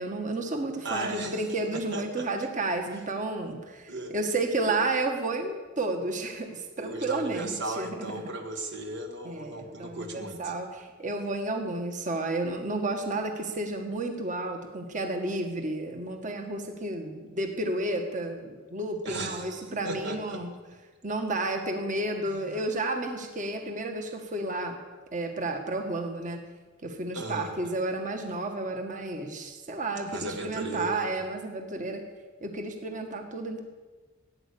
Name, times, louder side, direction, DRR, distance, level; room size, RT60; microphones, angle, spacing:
voice 1, 0.0-8.2 9.3-20.5 21.0-24.8 25.1-26.4 26.8-32.0 32.4-33.6, right 2 dB, 40° right, 4 dB, 1.8 m, -31 dB
voice 2, 0.8-1.4 1.9-2.2 3.9-4.1 6.8-10.5 19.0-20.4 27.1-27.5 30.0-31.0, right 2 dB, 60° right, 3 dB, 1.7 m, -36 dB
16.5 x 9.8 x 8.6 m, 1.3 s
head